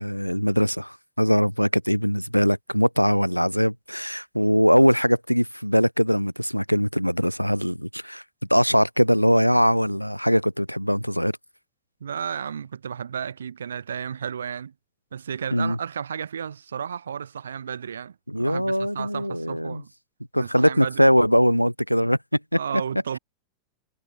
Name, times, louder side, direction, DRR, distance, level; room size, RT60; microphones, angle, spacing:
voice 1, 0.0-8.2 8.5-11.3 15.5-15.8 18.3-19.8 20.3-22.2 22.5-22.6, equal, 90° left, 1.7 m, -21 dB
voice 2, 12.0-14.7 15.1-19.9 20.4-21.1 22.6-23.2, right 7 dB, 70° right, 3.7 m, -33 dB
figure-of-eight pair, 90°, 0 cm